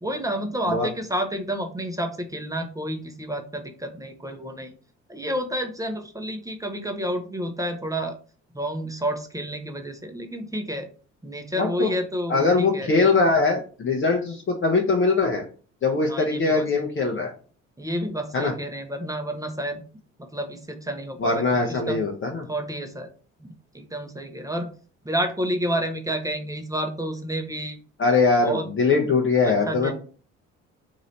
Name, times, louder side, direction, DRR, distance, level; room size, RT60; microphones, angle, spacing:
voice 1, 0.0-4.7 5.1-8.2 8.5-10.9 11.2-12.9 16.1-16.8 17.8-19.8 20.2-22.0 22.5-23.1 23.4-24.7 25.0-27.8 28.4-28.6 29.0-29.1 29.4-29.9, equal, 10° right, 5 dB, 0.7 m, -30 dB
voice 2, 11.6-11.9 12.3-15.4 15.8-17.3 18.3-18.5 21.2-22.5 28.0-29.9, left 3 dB, 35° left, 1 dB, 0.7 m, -21 dB
3.0 x 2.7 x 4.0 m, 0.39 s
hypercardioid pair, 50°, 37 cm